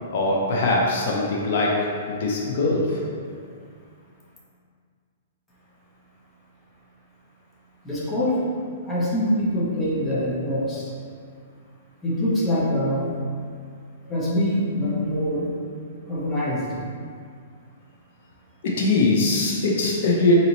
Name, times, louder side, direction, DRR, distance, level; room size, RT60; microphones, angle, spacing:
voice 1, 0.1-3.0 18.6-20.3, left 2 dB, 55° left, -2 dB, 0.6 m, -22 dB
voice 2, 7.8-8.4 8.9-10.9 12.0-13.1 14.0-15.5 16.1-16.7, equal, 10° left, -7 dB, 0.7 m, -24 dB
3.9 x 2.7 x 2.9 m, 2.1 s
hypercardioid pair, 155°, 0 cm